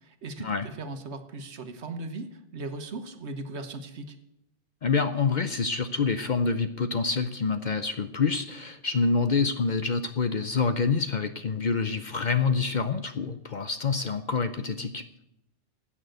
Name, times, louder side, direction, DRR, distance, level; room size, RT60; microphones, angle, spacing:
voice 1, 0.0-4.2, right 2 dB, 65° right, 8 dB, 1.4 m, -38 dB
voice 2, 4.8-15.0, left 4 dB, 50° left, 10 dB, 0.7 m, -27 dB
15.5 x 6.2 x 8.0 m, 0.84 s
omnidirectional pair, 1.2 m